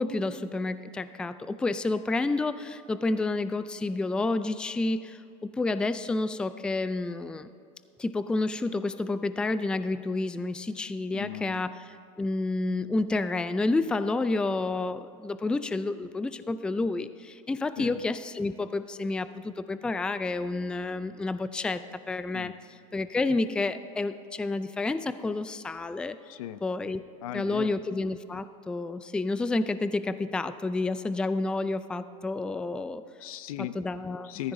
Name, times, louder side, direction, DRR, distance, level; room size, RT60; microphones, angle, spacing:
voice 1, 0.0-7.5 8.0-21.8 22.1-22.5 22.9-26.2 26.6-27.0 27.3-33.0 33.6-34.3, left 3 dB, 5° left, 13 dB, 0.3 m, -30 dB
voice 2, 11.1-11.6 17.8-18.0 22.3-22.6 26.3-26.6 27.2-27.8 33.2-33.8 34.2-34.5, left 13 dB, 85° left, 14 dB, 0.6 m, -37 dB
15.0 x 14.0 x 2.7 m, 2.5 s
supercardioid pair, 120°, 18 cm